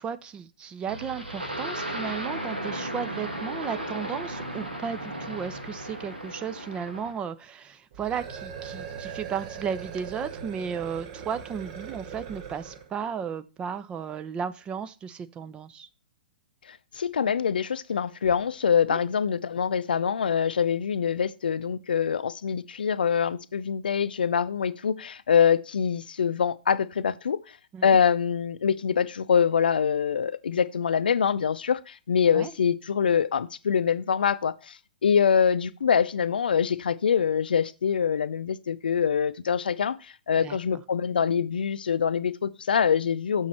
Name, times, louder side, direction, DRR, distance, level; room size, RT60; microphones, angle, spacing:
voice 1, 0.0-15.9 18.9-19.0 27.7-28.0 32.3-32.5 40.4-40.6, right 7 dB, 20° right, 0.6 m, -34 dB
sound 1, 0.9-7.2, right 1 dB, 85° right, 1.8 m, -35 dB
sound 2, 7.9-12.9, right 7 dB, 45° right, 1.3 m, -40 dB
voice 2, 16.7-27.4 27.8-43.5, left 7 dB, 70° left, 0.5 m, -24 dB
6.4 x 6.2 x 4.3 m
figure-of-eight pair, 115°, 5 cm